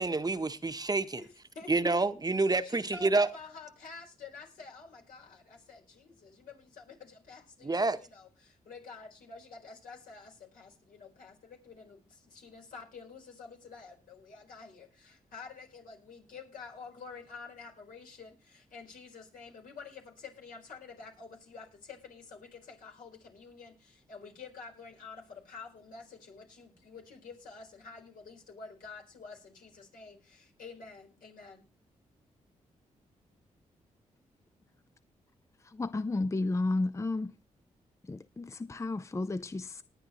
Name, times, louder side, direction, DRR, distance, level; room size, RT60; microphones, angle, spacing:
voice 1, 0.0-1.2 1.7-3.3 7.6-8.0, right 3 dB, 25° right, 1.0 m, -28 dB
voice 2, 1.2-1.7 2.6-31.7, left 4 dB, 75° left, 4.4 m, -49 dB
voice 3, 35.6-37.3 38.0-39.8, left 2 dB, 20° left, 0.5 m, -32 dB
19.5 x 8.8 x 3.1 m
supercardioid pair, 50°, 14 cm